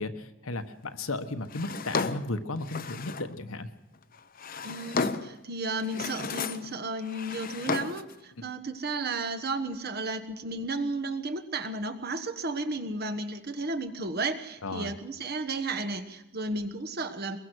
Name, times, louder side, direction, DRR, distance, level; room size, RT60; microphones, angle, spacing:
voice 1, 0.0-3.7 14.6-14.9, left 2 dB, 70° left, 8 dB, 1.3 m, -35 dB
Drawer open or close, 1.5-3.3 4.1-5.4 5.8-6.7 7.0-8.1, left 4 dB, 40° left, 0.7 m, -33 dB
voice 2, 4.6-17.4, right 2 dB, 45° right, 7 dB, 1.4 m, -33 dB
23.5 x 22.0 x 6.4 m, 0.93 s
head